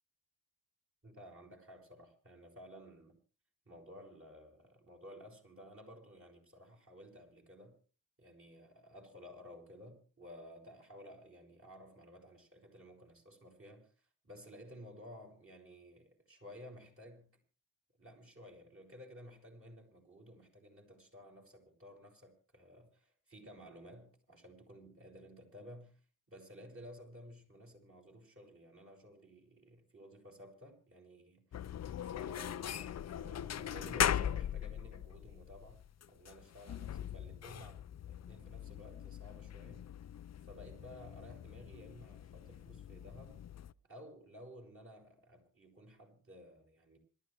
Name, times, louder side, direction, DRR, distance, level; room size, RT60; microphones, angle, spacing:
voice 1, 1.0-3.2 3.6-7.8 8.2-17.4 18.0-31.7 32.0-37.8 38.1-39.9 40.5-43.4 43.8-47.0, equal, 30° right, 6.7 m, -55 dB
sound 1, 31.5-43.7, left 10 dB, 40° left, 0.6 m, -40 dB
26.0 x 12.5 x 3.4 m
supercardioid pair, 60°, 42 cm